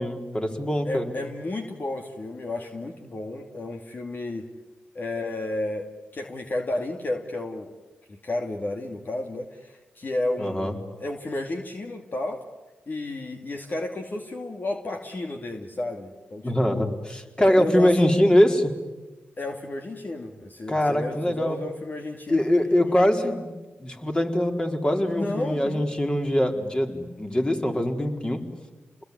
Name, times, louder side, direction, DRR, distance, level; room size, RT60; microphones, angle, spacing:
voice 1, 0.0-1.1 10.4-10.7 16.4-18.7 20.7-21.6 22.3-23.5 23.8-28.4, left 1 dB, 20° left, 4 dB, 4.2 m, -23 dB
voice 2, 0.9-4.5 4.9-5.9 6.1-7.7 8.1-12.4 12.9-16.9 17.5-18.1 19.4-22.4 25.1-25.9, left 2 dB, 45° left, 3 dB, 2.7 m, -32 dB
29.5 x 21.0 x 9.7 m, 1.2 s
cardioid pair, 50°, 4 cm